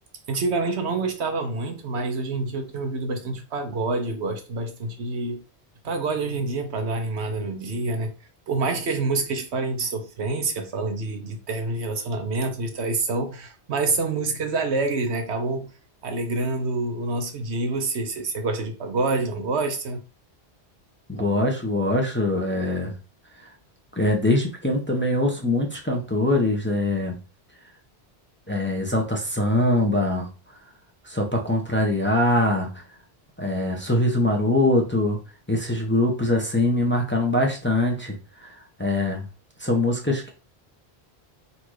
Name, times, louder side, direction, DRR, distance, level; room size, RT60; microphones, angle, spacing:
voice 1, 0.3-5.4 5.8-8.1 8.5-15.7 16.0-20.0, right 3 dB, 80° right, 1.2 m, -27 dB
voice 2, 21.1-22.9 23.4-23.5 23.9-27.2 28.5-30.3 31.0-32.8 33.4-35.2 35.5-39.2 39.6-40.3, left 1 dB, 10° left, 0.8 m, -23 dB
4.0 x 2.6 x 4.7 m
omnidirectional pair, 1.1 m